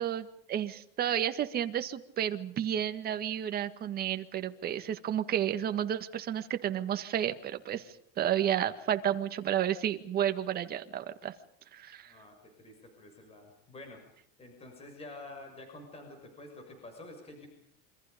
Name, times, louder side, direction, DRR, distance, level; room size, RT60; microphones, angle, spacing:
voice 1, 0.0-7.9 8.2-11.3 11.7-12.1, right 10 dB, 30° right, 8 dB, 1.9 m, -31 dB
voice 2, 12.0-14.0 14.4-17.5, left 2 dB, 20° left, 4 dB, 6.5 m, -48 dB
28.0 x 25.5 x 5.2 m, 0.66 s
supercardioid pair, 150°, 31 cm